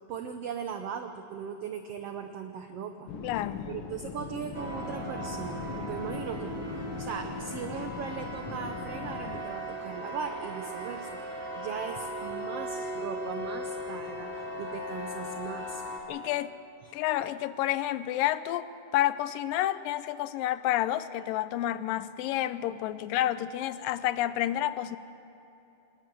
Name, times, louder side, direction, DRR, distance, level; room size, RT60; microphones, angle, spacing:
voice 1, 0.1-3.1 3.6-15.8 16.8-16.9, right 7 dB, 85° right, 7 dB, 1.3 m, -39 dB
sound 1, 3.1-9.4, left 6 dB, 60° left, 1.5 m, -40 dB
voice 2, 3.2-3.7 16.1-16.5 16.9-25.0, left 13 dB, 85° left, 14 dB, 2.4 m, -29 dB
sound 2, 4.5-16.0, equal, 20° right, 3.0 m, -38 dB
26.5 x 20.0 x 6.2 m, 2.9 s
omnidirectional pair, 3.9 m